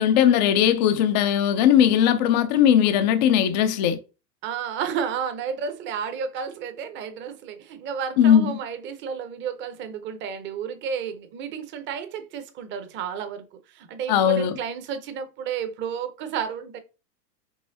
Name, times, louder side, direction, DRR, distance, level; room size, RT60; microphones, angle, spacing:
voice 1, 0.0-4.0 8.2-8.5 14.1-14.5, left 9 dB, 30° left, 0.3 m, -19 dB
voice 2, 4.4-16.8, right 7 dB, 25° right, 0.7 m, -32 dB
5.5 x 3.4 x 2.7 m
hypercardioid pair, 130°, 50 cm